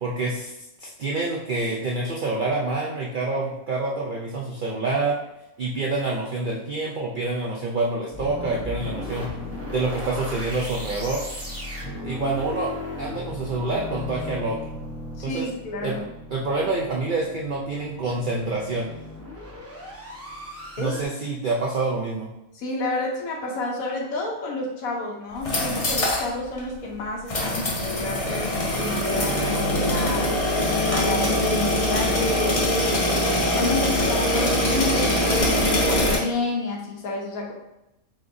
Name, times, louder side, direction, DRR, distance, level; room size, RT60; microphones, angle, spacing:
voice 1, 0.0-0.5 0.8-5.2 5.6-9.3 9.7-11.2 12.0-12.7 13.0-14.6 15.2-15.5 15.8-16.0 16.3-18.9 20.8-22.3, right 3 dB, 80° right, -2 dB, 0.4 m, -27 dB
sound 1, 8.1-21.1, left 1 dB, 15° right, 0.6 m, -36 dB
voice 2, 15.2-16.1 20.8-21.0 22.5-30.3 30.9-33.2 33.5-37.5, left 2 dB, 75° left, 0 dB, 1.2 m, -30 dB
sound 2, 25.3-26.3 26.6-26.7 27.3-36.2, left 1 dB, 35° left, 0.6 m, -23 dB
4.3 x 3.7 x 2.6 m, 0.89 s
omnidirectional pair, 1.5 m